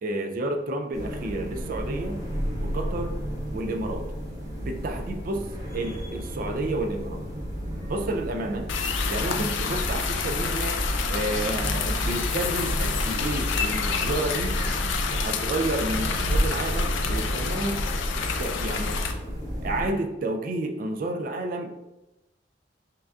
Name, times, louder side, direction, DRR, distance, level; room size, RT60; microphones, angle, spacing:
voice 1, 0.0-2.2 2.6-3.2 3.5-4.1 4.6-7.2 7.9-8.7 9.1-10.8 11.1-14.6 15.1-17.9 18.4-19.0 19.6-21.9, right 2 dB, 50° right, 5 dB, 0.4 m, -30 dB
sound 1, 0.9-19.9, equal, 20° right, 0.7 m, -33 dB
sound 2, 8.7-19.1, left 4 dB, 90° left, 0.4 m, -28 dB
5.6 x 2.5 x 2.3 m, 0.97 s
head